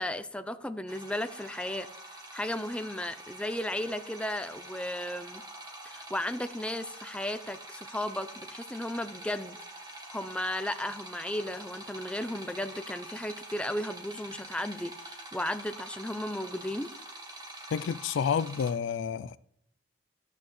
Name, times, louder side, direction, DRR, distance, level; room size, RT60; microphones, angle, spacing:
voice 1, 0.0-1.9 2.3-5.4 5.8-9.6 10.1-16.9, left 1 dB, 5° left, 0.5 m, -35 dB
sound 1, 0.9-18.7, right 1 dB, 20° right, 1.6 m, -46 dB
voice 2, 17.7-19.4, left 7 dB, 70° left, 0.3 m, -29 dB
12.5 x 8.6 x 3.1 m
head